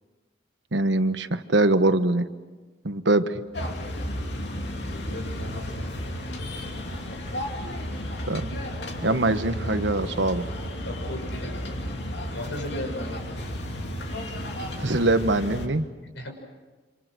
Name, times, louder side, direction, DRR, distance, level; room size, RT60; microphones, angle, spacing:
voice 1, 0.7-2.3 2.8-3.3 8.3-8.6 9.0-10.5 14.8-15.9, right 2 dB, 80° right, 10 dB, 1.3 m, -23 dB
sound 1, 3.5-15.7, left 1 dB, 65° left, 2.9 m, -33 dB
voice 2, 4.9-6.1 6.6-6.9 10.8-11.6 12.3-13.4 16.1-16.3, left 1 dB, 85° left, 4 dB, 6.3 m, -37 dB
27.5 x 27.0 x 6.3 m, 1.3 s
head